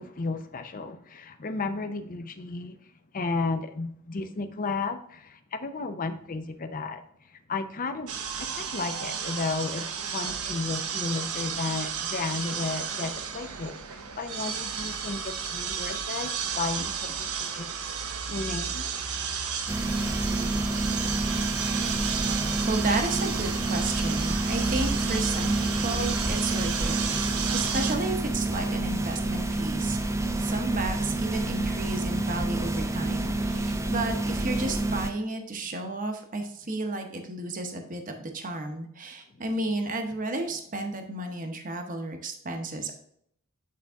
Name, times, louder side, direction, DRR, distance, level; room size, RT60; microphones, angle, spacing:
voice 1, 0.0-17.7 18.3-18.9, left 3 dB, 40° left, 0.6 m, -33 dB
sound 1, 8.1-28.0, right 6 dB, 80° right, 0.8 m, -32 dB
sound 2, 19.7-35.1, right 2 dB, 15° right, 0.4 m, -28 dB
voice 2, 22.7-30.0 30.4-42.9, right 2 dB, 40° right, 0.8 m, -32 dB
8.5 x 4.0 x 3.5 m
head